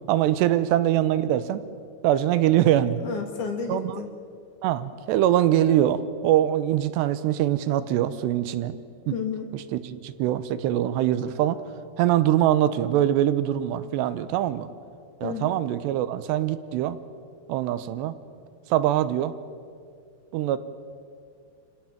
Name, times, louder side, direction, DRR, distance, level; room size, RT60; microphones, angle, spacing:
voice 1, 0.1-1.6 2.0-3.0 3.7-4.0 4.6-8.8 9.1-9.2 9.5-11.6 12.0-14.7 15.2-17.0 17.5-18.1 18.7-19.3 20.3-20.6, right 12 dB, 85° right, 13 dB, 3.0 m, -23 dB
voice 2, 3.0-4.1 9.1-9.5 15.2-15.6, left 6 dB, 55° left, 4 dB, 3.1 m, -31 dB
28.0 x 17.5 x 7.3 m, 2.3 s
omnidirectional pair, 4.9 m